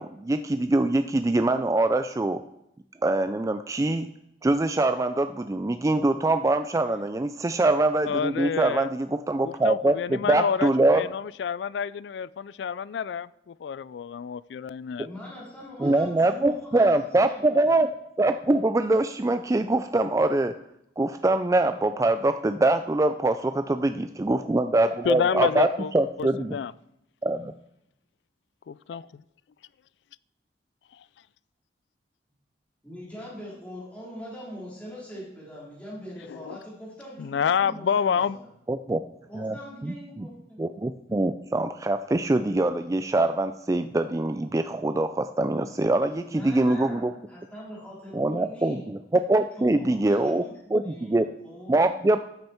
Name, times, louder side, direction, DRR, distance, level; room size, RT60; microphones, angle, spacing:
voice 1, 0.0-2.4 3.0-4.1 4.4-11.0 15.8-17.9 18.2-20.5 21.0-26.6 27.2-27.5 38.7-39.0 39.4-39.6 39.8-40.3 40.6-47.1 48.1-50.4 50.7-51.3 51.7-52.2, right 2 dB, 20° right, 9 dB, 0.4 m, -24 dB
voice 2, 8.1-8.9 9.4-15.1 25.1-25.9 26.2-26.7 28.7-29.0 36.3-36.6 37.2-38.4, left 7 dB, 70° left, 20 dB, 0.3 m, -28 dB
voice 3, 15.0-17.8 32.8-38.5 39.3-40.6 46.3-48.9 49.6-51.9, equal, 10° left, -7 dB, 3.9 m, -42 dB
13.0 x 8.9 x 4.4 m, 0.82 s
head